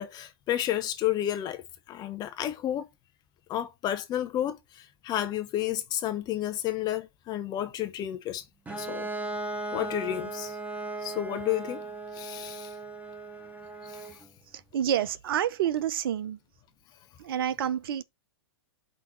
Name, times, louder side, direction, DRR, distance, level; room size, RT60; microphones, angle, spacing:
voice 1, 0.0-2.9 3.5-8.4 8.8-9.1 9.7-10.6 11.0-11.8 12.1-12.7 13.9-14.1, left 12 dB, 30° left, 1.3 m, -31 dB
Bowed string instrument, 8.7-14.3, right 2 dB, 10° right, 1.7 m, -37 dB
voice 2, 14.5-16.4 17.2-18.0, right 10 dB, 60° right, 0.8 m, -28 dB
5.6 x 4.2 x 4.5 m
hypercardioid pair, 115°, 13 cm